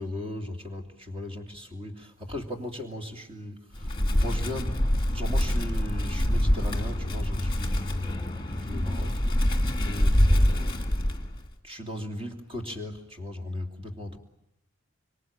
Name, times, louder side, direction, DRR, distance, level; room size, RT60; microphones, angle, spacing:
voice 1, 0.0-4.8 5.1-9.5 9.8-10.8 11.6-14.2, left 1 dB, 25° right, 4 dB, 2.9 m, -37 dB
Wind, 3.7-11.5, equal, 20° left, 2.1 m, -25 dB
25.5 x 25.0 x 8.8 m, 0.83 s
head